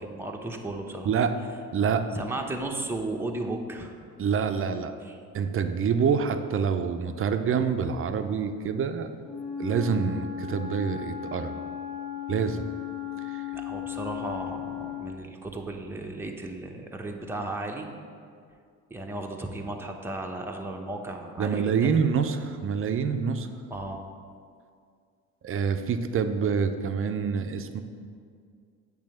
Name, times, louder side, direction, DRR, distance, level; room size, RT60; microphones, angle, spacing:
voice 1, 0.0-1.1 2.1-3.9 5.0-5.2 13.5-17.9 18.9-21.9 23.7-24.0, right 2 dB, 5° right, 1 dB, 0.8 m, -35 dB
voice 2, 1.1-1.4 1.7-2.0 4.2-4.9 5.3-9.1 9.6-11.5 12.3-12.7 13.2-13.4 21.4-23.5 25.4-27.8, right 6 dB, 35° right, 8 dB, 0.6 m, -26 dB
Wind instrument woodwind instrument, 9.2-15.2, left 9 dB, 50° left, 1.7 m, -36 dB
8.5 x 3.4 x 6.4 m, 2.2 s
supercardioid pair, 75°, 35 cm